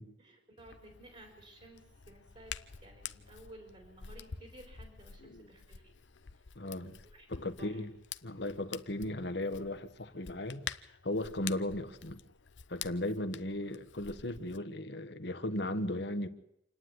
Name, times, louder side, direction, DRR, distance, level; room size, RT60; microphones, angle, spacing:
voice 1, 0.2-5.9 6.3-6.4 7.1-7.8, right 1 dB, 40° right, 4.3 m, -55 dB
Hands, 0.6-14.6, left 8 dB, 90° left, 0.8 m, -48 dB
voice 2, 6.5-7.0 7.3-7.9 8.2-12.2 12.7-16.3, left 1 dB, 65° left, 1.5 m, -36 dB
27.5 x 9.8 x 9.7 m
head